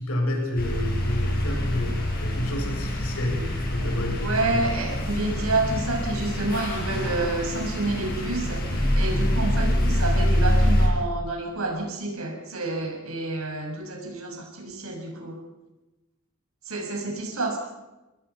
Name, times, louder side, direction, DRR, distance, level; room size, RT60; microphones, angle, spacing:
voice 1, 0.0-4.6, left 1 dB, 90° left, 1 dB, 7.2 m, -29 dB
sound 1, 0.6-10.9, equal, 45° left, 6.7 m, -25 dB
voice 2, 4.2-8.6 8.9-15.4 16.6-17.6, right 2 dB, 85° right, 2 dB, 6.4 m, -29 dB
28.0 x 21.0 x 5.7 m, 1.0 s
head